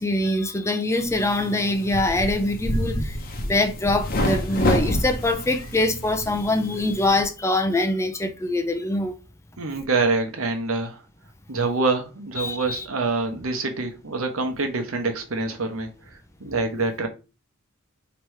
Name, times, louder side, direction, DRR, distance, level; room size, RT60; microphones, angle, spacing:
voice 1, 0.0-9.2 12.4-12.8, left 2 dB, 15° left, 0.4 m, -24 dB
sound 1, 1.0-7.2, equal, 45° left, 0.8 m, -28 dB
voice 2, 9.6-11.0 11.5-15.9 16.4-17.1, right 3 dB, 75° right, 1.0 m, -25 dB
3.3 x 3.0 x 4.7 m
head